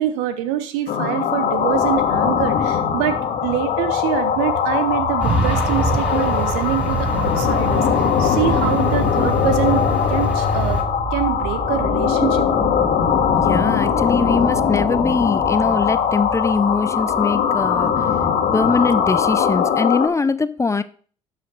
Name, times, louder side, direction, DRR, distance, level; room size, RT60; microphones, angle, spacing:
voice 1, 0.0-10.8 11.1-12.5, right 11 dB, 75° right, 1.1 m, -25 dB
sound 1, 0.9-20.1, left 7 dB, 60° left, 1.8 m, -20 dB
sound 2, 2.8-19.8, right 3 dB, 40° right, 2.9 m, -32 dB
Truck, 5.2-10.8, equal, 10° right, 2.7 m, -24 dB
voice 2, 13.3-18.1 18.5-20.8, left 4 dB, 20° left, 0.6 m, -22 dB
12.0 x 5.2 x 3.9 m
hypercardioid pair, 60°, 16 cm